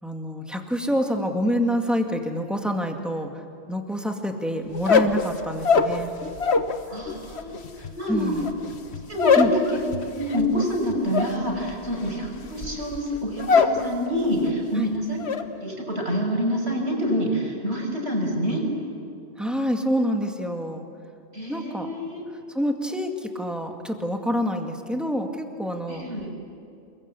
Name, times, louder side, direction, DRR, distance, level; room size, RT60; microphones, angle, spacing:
voice 1, 0.0-3.3 3.7-6.1 8.1-8.5 9.4-9.5 14.7-14.9 19.4-20.8 21.5-21.9 22.5-26.0, equal, ahead, 3 dB, 2.2 m, -27 dB
sound 1, 4.7-6.8 7.1-13.8 14.1-14.6 14.9-15.4, left 5 dB, 75° left, 1.5 m, -23 dB
voice 2, 6.9-7.7 8.0-8.3 9.1-9.8 10.1-15.2 15.5-18.6 21.3-22.2 25.9-26.3, equal, 75° right, 0 dB, 6.3 m, -27 dB
28.5 x 22.0 x 8.5 m, 2.5 s
omnidirectional pair, 1.1 m